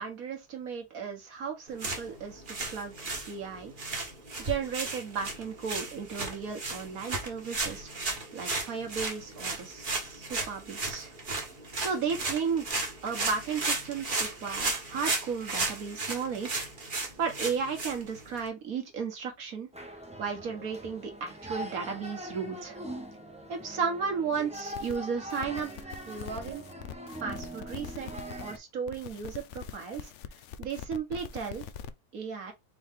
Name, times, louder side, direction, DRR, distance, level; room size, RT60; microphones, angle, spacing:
voice 1, 0.0-2.9 3.3-3.7 4.4-11.1 11.8-12.7 13.0-16.7 17.2-19.7 20.2-22.8 23.5-26.6 27.2-28.1 28.4-30.1 30.6-31.7 32.1-32.5, right 6 dB, 65° right, 1.7 m, -34 dB
sound 1, 1.7-18.5, right 3 dB, 35° right, 1.3 m, -35 dB
sound 2, 19.7-28.6, right 1 dB, 5° right, 0.7 m, -42 dB
sound 3, 24.5-25.0 25.3-28.6 28.9-31.9, left 8 dB, 65° left, 0.7 m, -44 dB
4.6 x 3.1 x 3.6 m
omnidirectional pair, 1.7 m